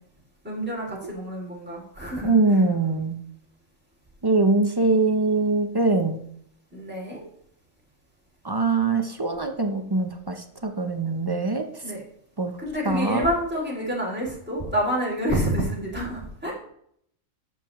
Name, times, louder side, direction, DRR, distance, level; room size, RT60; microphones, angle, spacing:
voice 1, 0.4-2.6 6.7-7.2 11.8-12.0 12.6-16.5, equal, 10° right, -4 dB, 2.9 m, -28 dB
voice 2, 2.2-3.2 4.2-6.2 8.5-10.1 10.6-11.6 12.4-12.5 12.8-13.3, right 3 dB, 25° right, 6 dB, 0.6 m, -22 dB
10.5 x 7.3 x 3.1 m, 0.68 s
omnidirectional pair, 1.3 m